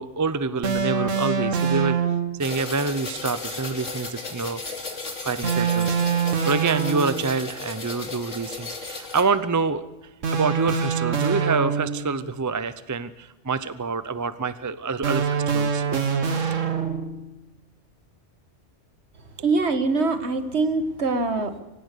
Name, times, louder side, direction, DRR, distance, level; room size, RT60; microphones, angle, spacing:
voice 1, 0.0-2.0 2.4-6.0 6.4-9.9 10.3-16.0, right 4 dB, 20° right, 13 dB, 0.5 m, -27 dB
sound 1, 0.6-2.4 5.4-7.3 10.2-12.2 15.0-17.2, right 6 dB, 85° right, 1.8 m, -24 dB
sound 2, 2.4-9.2, left 3 dB, 80° left, 2.9 m, -35 dB
voice 2, 19.4-21.6, right 3 dB, 60° right, 8 dB, 1.8 m, -23 dB
25.0 x 16.0 x 6.8 m, 0.97 s
omnidirectional pair, 1.3 m